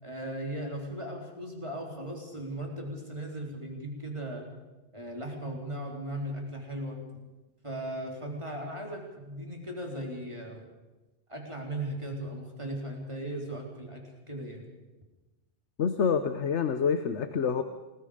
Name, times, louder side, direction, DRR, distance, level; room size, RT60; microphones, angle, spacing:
voice 1, 0.0-4.5 4.9-7.0 7.6-10.7 11.3-14.6, right 1 dB, 25° right, 0 dB, 3.9 m, -37 dB
voice 2, 15.8-17.6, left 6 dB, 90° left, 10 dB, 1.3 m, -27 dB
29.0 x 20.0 x 5.1 m, 1.1 s
omnidirectional pair, 1.1 m